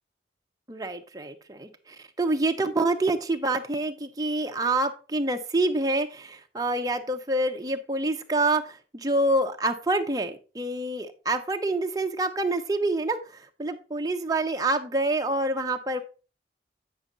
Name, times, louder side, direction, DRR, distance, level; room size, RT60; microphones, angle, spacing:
voice 1, 0.7-16.0, right 2 dB, 20° right, 5 dB, 0.6 m, -27 dB
8.7 x 5.3 x 3.8 m, 0.34 s
head